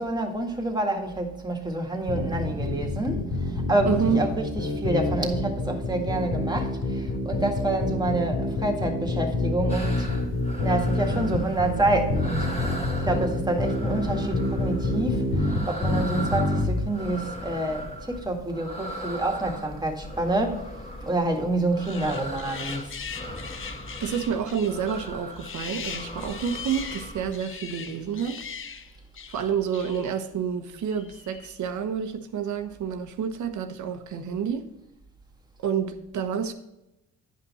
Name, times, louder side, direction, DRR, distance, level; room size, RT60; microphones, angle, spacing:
voice 1, 0.0-10.1 10.6-12.5 13.0-20.7 21.0-22.9, right 2 dB, 15° right, 1.8 m, -28 dB
sound 1, 2.1-16.8, left 2 dB, 70° left, 2.7 m, -27 dB
voice 2, 3.8-4.2 24.0-28.4 29.3-34.7 35.6-36.5, right 7 dB, 70° right, 1.1 m, -29 dB
sound 2, 9.7-27.4, equal, 20° left, 1.8 m, -39 dB
sound 3, 21.8-30.3 30.9-31.6, left 6 dB, 40° left, 0.8 m, -40 dB
10.0 x 5.6 x 4.2 m
cardioid pair, 90°, 31 cm